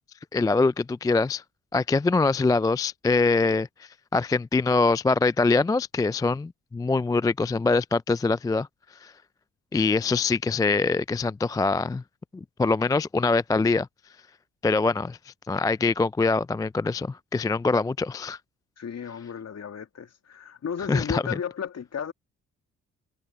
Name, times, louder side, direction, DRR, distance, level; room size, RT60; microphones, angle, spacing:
voice 1, 0.3-1.4 1.7-8.7 9.0-9.1 9.7-12.0 12.3-13.9 14.6-18.4 20.9-21.2, left 3 dB, 10° left, 0.3 m, -24 dB
voice 2, 18.8-22.1, left 7 dB, 50° left, 2.3 m, -34 dB
hypercardioid pair, 50°, 35 cm